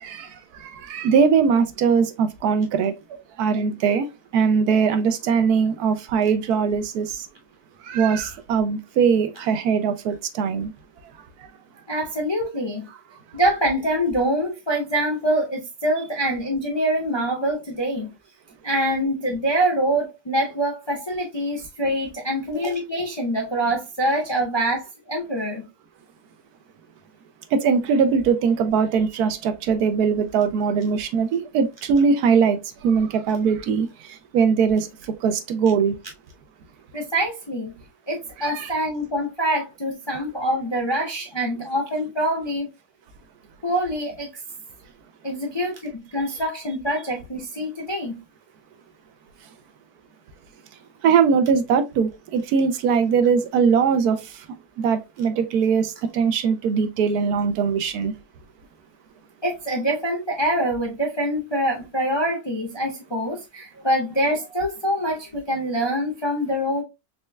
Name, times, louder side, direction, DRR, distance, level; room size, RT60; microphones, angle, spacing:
voice 1, 0.0-2.9 3.4-4.1 4.3-7.3 7.8-10.7 27.5-34.9 35.2-36.0 38.4-38.7 51.0-54.4 54.8-58.1, right 6 dB, 80° right, 1.1 m, -21 dB
voice 2, 11.9-12.9 13.3-18.1 18.6-25.7 36.9-37.7 38.1-42.7 43.6-44.3 45.2-48.2 59.4-66.8, right 1 dB, 30° left, 0.5 m, -25 dB
4.2 x 3.2 x 2.2 m
omnidirectional pair, 1.7 m